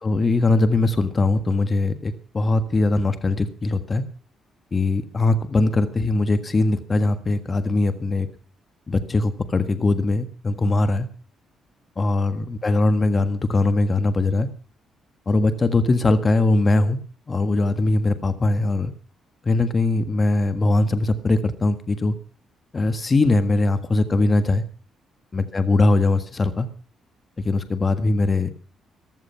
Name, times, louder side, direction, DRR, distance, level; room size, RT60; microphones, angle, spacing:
voice 1, 0.0-4.0 4.7-8.3 8.9-11.1 12.0-14.5 15.3-17.0 17.3-18.9 19.4-22.1 22.7-24.6 25.3-26.7 27.4-28.5, left 2 dB, 30° left, 9 dB, 1.5 m, -21 dB
15.5 x 14.0 x 5.6 m, 0.39 s
cardioid pair, 90°, 0 cm